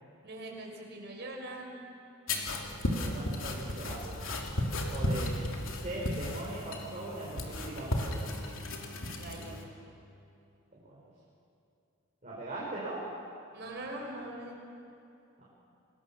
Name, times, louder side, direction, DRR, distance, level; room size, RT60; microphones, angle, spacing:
voice 1, 0.2-1.8 9.2-9.6 13.5-14.7, right 1 dB, 50° right, 0 dB, 5.3 m, -42 dB
sound 1, 2.3-9.6, left 1 dB, 65° left, 3.0 m, -35 dB
voice 2, 2.9-4.2 4.9-5.3 5.7-8.2 9.3-9.6 10.7-11.0 12.2-13.0 15.4-15.5, right 1 dB, 35° right, -7 dB, 5.1 m, -40 dB
28.0 x 20.0 x 7.2 m, 2.8 s
head